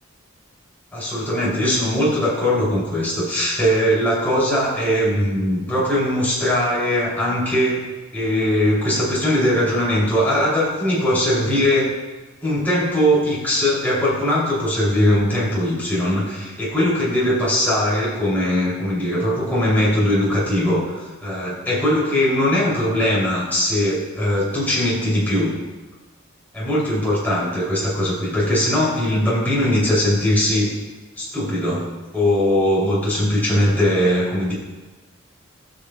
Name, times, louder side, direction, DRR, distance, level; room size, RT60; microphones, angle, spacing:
voice 1, 0.9-7.8 8.1-11.9 12.4-25.5 26.5-30.7 31.2-31.9 32.1-34.5, left 1 dB, 10° left, -7 dB, 2.7 m, -20 dB
18.5 x 6.6 x 2.2 m, 1.2 s
head